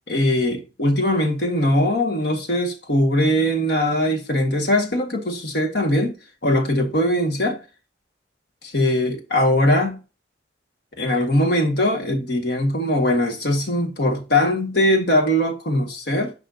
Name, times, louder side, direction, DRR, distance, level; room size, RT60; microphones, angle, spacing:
voice 1, 0.1-6.2 6.4-7.6 8.6-10.0 11.0-16.3, left 1 dB, 55° left, 1.7 m, -21 dB
10.0 x 5.6 x 2.8 m
head